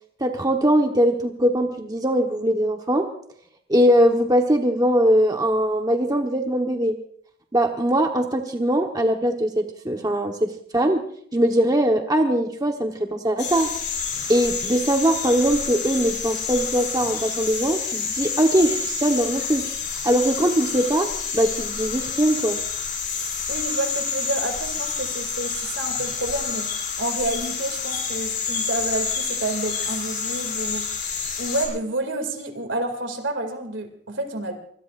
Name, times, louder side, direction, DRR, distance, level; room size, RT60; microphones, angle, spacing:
voice 1, 0.2-3.1 3.7-7.0 7.5-11.1 11.3-13.7 14.3-19.7 20.0-22.6, right 1 dB, 20° right, 3 dB, 1.1 m, -21 dB
sound 1, 13.4-31.7, left 6 dB, 60° left, 6.9 m, -28 dB
voice 2, 23.5-30.9 31.4-34.6, right 2 dB, 75° right, 6 dB, 2.5 m, -29 dB
24.0 x 21.0 x 2.5 m, 0.62 s
head